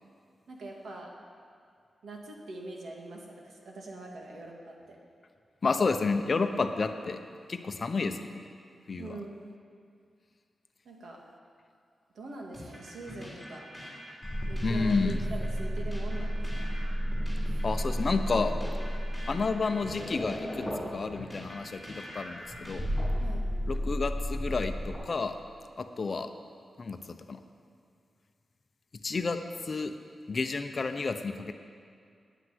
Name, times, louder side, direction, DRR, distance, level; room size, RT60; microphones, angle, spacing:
voice 1, 0.5-1.1 2.0-5.0 9.0-9.5 10.8-11.2 12.1-13.7 14.5-16.9 23.2-23.5, right 2 dB, 80° right, 0 dB, 2.0 m, -43 dB
voice 2, 5.6-7.2 7.5-8.5 8.9-9.1 14.1-14.2 14.6-15.2 17.6-18.6 19.3-22.9 23.7-25.4 25.8-26.3 26.8-27.4 29.0-29.9 30.3-31.5, left 4 dB, 40° left, 7 dB, 0.6 m, -30 dB
sound 1, 12.5-23.3, equal, 10° right, 3.4 m, -45 dB
sound 2, 14.2-21.5 22.4-25.0, equal, 10° left, 3.9 m, -32 dB
9.6 x 9.2 x 9.4 m, 2.3 s
wide cardioid pair, 165°, 0 cm